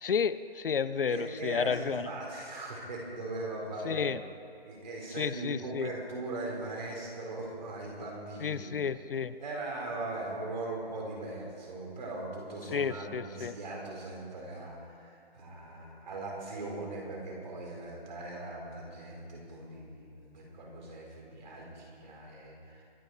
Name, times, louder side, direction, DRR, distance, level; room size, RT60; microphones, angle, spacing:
voice 1, 0.0-2.1 3.9-4.2 5.2-5.9 8.4-9.3 12.7-13.5, left 6 dB, 60° left, 15 dB, 0.6 m, -31 dB
voice 2, 1.1-4.1 4.6-8.7 9.4-22.8, right 2 dB, 45° right, -2 dB, 4.6 m, -40 dB
24.5 x 9.6 x 4.7 m, 2.4 s
hypercardioid pair, 160°, 31 cm